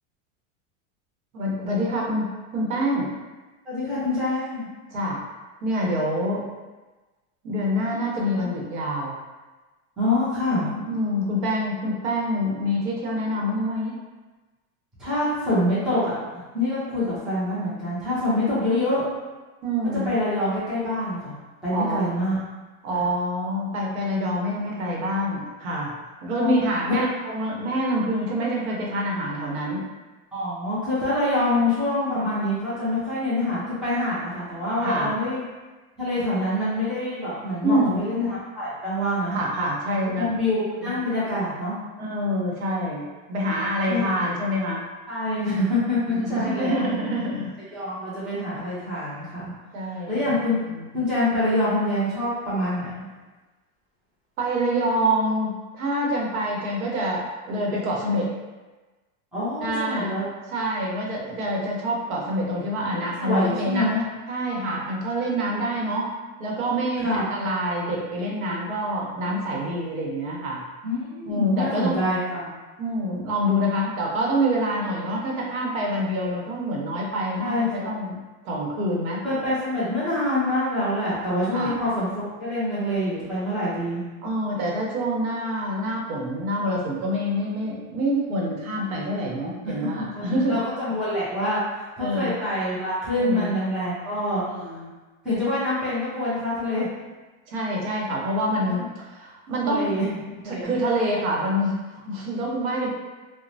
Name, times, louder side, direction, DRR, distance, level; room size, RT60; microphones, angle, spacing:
voice 1, 1.3-3.1 4.9-5.2 5.6-6.4 7.4-9.1 10.5-14.0 19.6-20.1 21.7-22.1 22.8-25.9 26.2-29.9 34.8-35.1 37.6-38.0 39.3-40.3 41.0-41.1 42.0-44.8 46.2-47.5 49.7-50.3 50.7-50.9 54.4-58.3 59.6-60.2 60.5-66.1 66.4-70.6 71.3-72.0 72.8-78.2 78.4-79.2 81.5-81.8 84.2-90.6 92.0-92.3 93.2-93.6 94.5-94.9 97.5-98.8 99.1-99.9 100.5-102.9, equal, 80° right, -2 dB, 0.9 m, -26 dB
voice 2, 3.6-4.7 8.4-8.5 10.0-10.7 15.0-16.2 16.5-19.0 20.0-21.3 21.6-22.4 22.9-23.0 26.3-26.6 30.3-35.4 36.0-39.4 40.2-41.7 43.9-44.1 45.1-46.8 47.7-50.6 50.9-53.1 59.3-60.3 62.8-64.0 67.0-67.5 70.8-72.5 77.4-77.9 79.2-84.0 89.6-94.8 95.2-96.9 98.7-98.8 99.6-100.1 100.4-100.7, left 1 dB, ahead, -12 dB, 0.5 m, -26 dB
3.0 x 2.0 x 2.6 m, 1.2 s
supercardioid pair, 155°, 42 cm